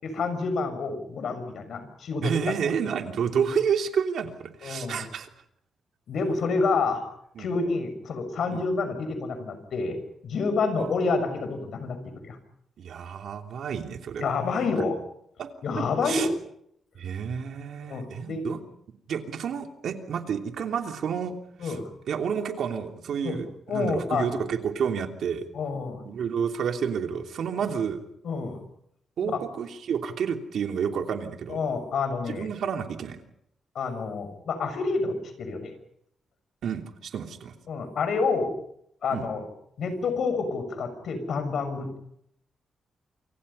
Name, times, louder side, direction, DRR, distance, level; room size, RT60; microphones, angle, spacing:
voice 1, 0.0-2.3 4.6-5.1 6.1-7.0 7.4-10.0 10.2-12.4 14.2-15.0 15.6-16.3 17.8-18.4 21.6-21.9 23.2-23.4 23.7-24.3 25.5-26.0 27.5-27.7 28.2-28.6 29.2-29.4 31.5-32.5 33.7-35.7 37.7-38.5 39.0-39.4 39.8-42.0, left 4 dB, 65° left, 9 dB, 6.3 m, -28 dB
voice 2, 2.2-5.3 7.3-7.5 8.5-8.6 10.8-11.0 12.8-14.4 15.4-15.5 15.8-16.3 16.9-18.6 19.1-21.4 21.6-21.8 22.1-25.5 26.0-28.0 29.2-31.6 32.3-33.2 36.6-37.6 39.1-39.2, right 7 dB, 70° right, 5 dB, 3.0 m, -30 dB
28.0 x 25.5 x 5.6 m, 0.72 s
wide cardioid pair, 140°, 0 cm